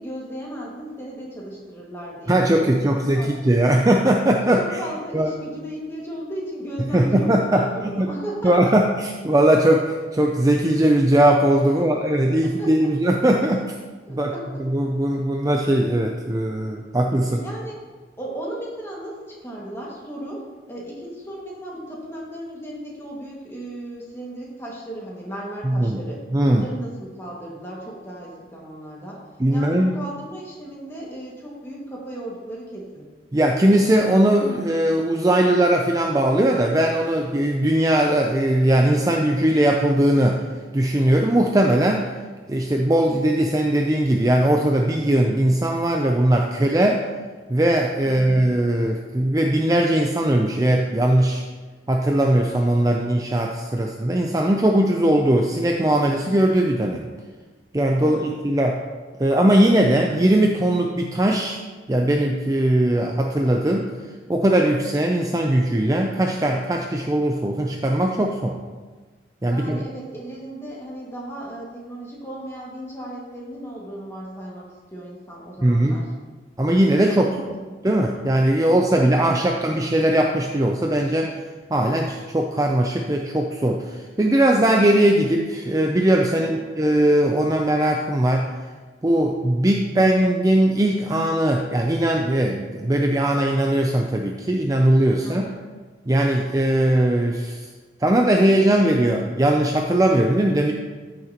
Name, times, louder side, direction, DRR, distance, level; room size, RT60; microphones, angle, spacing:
voice 1, 0.0-3.3 4.5-8.7 12.0-12.1 12.4-12.9 14.1-14.6 15.1-15.2 17.3-17.8 18.2-29.2 29.5-33.0 48.1-48.5 58.0-58.3 69.4-74.6 74.9-76.1 77.1-77.4 78.9-79.7 86.3-86.7 95.2-95.6, right 1 dB, 15° left, -4 dB, 2.0 m, -36 dB
voice 2, 2.3-4.8 5.1-5.3 6.9-7.7 8.0-8.1 8.4-8.9 9.2-13.8 14.1-14.3 14.6-17.4 25.6-26.0 26.3-26.7 29.4-29.9 33.3-40.4 40.7-42.1 42.5-47.0 47.5-51.4 51.9-57.1 57.7-58.8 59.2-61.6 61.9-63.9 64.3-68.6 69.4-69.8 75.6-76.0 76.6-77.3 77.8-81.3 81.7-88.5 89.0-95.5 96.1-97.7 98.0-100.7, right 1 dB, 20° right, 2 dB, 0.5 m, -19 dB
14.0 x 6.6 x 3.0 m, 1.4 s
head